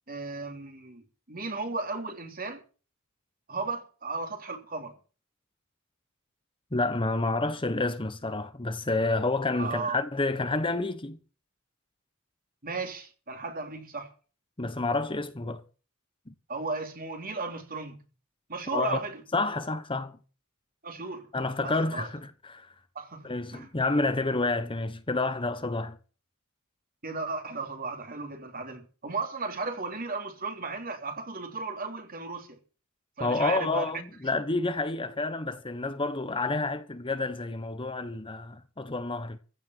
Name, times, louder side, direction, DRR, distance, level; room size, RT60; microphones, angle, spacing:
voice 1, 0.1-2.6 3.5-4.9 9.6-10.0 12.6-14.1 16.5-18.0 18.5-19.2 20.8-21.3 21.6-22.1 22.9-23.7 27.0-32.6 33.2-33.9, right 3 dB, 45° right, 3.4 m, -35 dB
voice 2, 6.7-11.2 14.6-15.6 16.3-16.4 18.7-19.0 19.3-20.2 21.3-22.7 23.2-26.0 33.2-39.4, left 3 dB, 25° left, 1.2 m, -29 dB
15.5 x 6.9 x 9.6 m
head